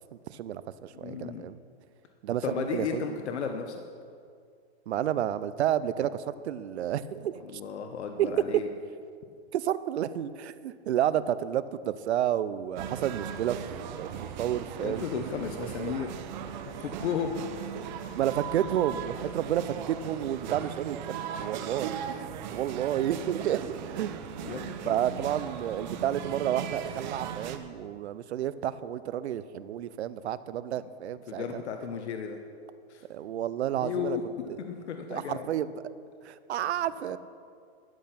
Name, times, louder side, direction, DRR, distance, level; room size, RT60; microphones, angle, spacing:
voice 1, 0.3-1.6 2.2-3.2 4.9-7.6 8.2-8.5 9.5-13.6 14.0-15.3 15.6-16.0 18.1-21.0 21.4-24.2 24.8-31.6 33.1-34.2 34.5-34.6 35.1-35.7 36.2-37.2, right 11 dB, 75° right, 15 dB, 0.7 m, -31 dB
voice 2, 0.9-1.4 2.4-3.8 7.4-8.7 14.8-16.1 16.8-17.4 24.4-25.3 31.3-32.4 32.9-33.0 33.8-35.5, left 7 dB, 80° left, 5 dB, 1.1 m, -34 dB
sound 1, 12.8-27.6, right 8 dB, 45° right, 1.0 m, -38 dB
12.5 x 10.5 x 5.9 m, 2.3 s
hypercardioid pair, 160°, 33 cm